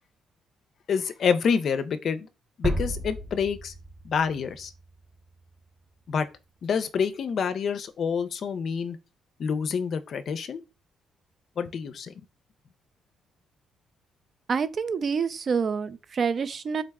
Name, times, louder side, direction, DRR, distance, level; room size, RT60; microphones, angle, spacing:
voice 1, 0.9-2.3 2.6-3.7 4.0-4.7 6.1-6.3 6.6-9.0 9.4-10.6 11.6-12.1, left 6 dB, 60° left, 0.4 m, -27 dB
sound 1, 2.6-5.5, right 1 dB, 25° right, 0.8 m, -33 dB
voice 2, 14.5-16.8, right 6 dB, 50° right, 0.4 m, -27 dB
3.7 x 2.1 x 3.4 m
cardioid pair, 90°, 0 cm